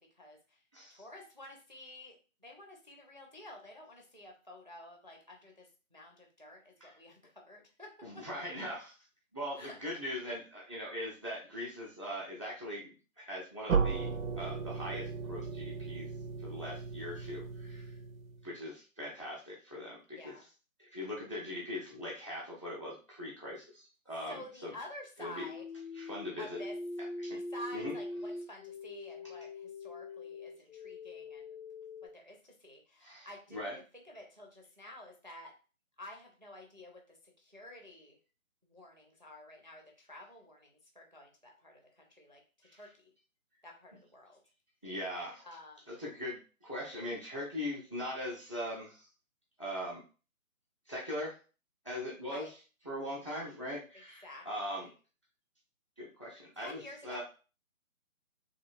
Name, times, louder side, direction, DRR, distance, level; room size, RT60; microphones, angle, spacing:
voice 1, 0.0-0.6 0.9-8.3 9.6-9.8 20.1-20.4 24.3-25.7 26.4-26.7 27.3-31.6 32.0-35.5 36.0-38.2 38.6-43.1 43.6-44.4 45.4-45.9 52.3-52.5 54.2-54.9 56.6-57.2, left 1 dB, 35° right, 1 dB, 0.4 m, -51 dB
voice 2, 8.0-8.9 9.3-14.1 14.4-16.1 16.4-17.9 18.4-20.3 20.9-24.7 25.2-25.5 26.0-26.6 27.2-27.4 27.7-27.9 33.0-33.8 42.7-42.8 44.8-45.4 45.9-49.1 49.6-50.0 50.9-51.3 51.8-52.5 52.8-54.9 56.0-57.2, left 1 dB, 25° left, -3 dB, 0.6 m, -41 dB
sound 1, 13.7-18.5, right 5 dB, 80° right, 0.5 m, -35 dB
sound 2, 25.4-32.1, left 2 dB, 65° left, 0.5 m, -43 dB
2.9 x 2.6 x 2.5 m, 0.35 s
figure-of-eight pair, 150°, 41 cm